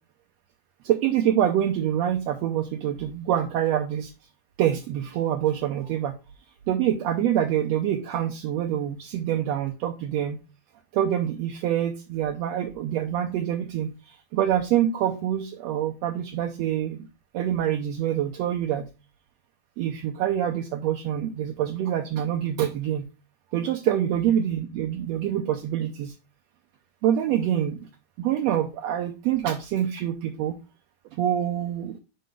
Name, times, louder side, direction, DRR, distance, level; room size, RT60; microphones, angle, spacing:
voice 1, 0.8-4.1 4.6-6.2 6.7-10.4 10.9-17.1 17.3-18.9 19.8-23.1 23.5-26.1 27.0-27.9 28.2-30.6 31.2-32.0, right 10 dB, 75° right, 4 dB, 1.8 m, -26 dB
7.7 x 5.3 x 3.5 m, 0.30 s
omnidirectional pair, 3.4 m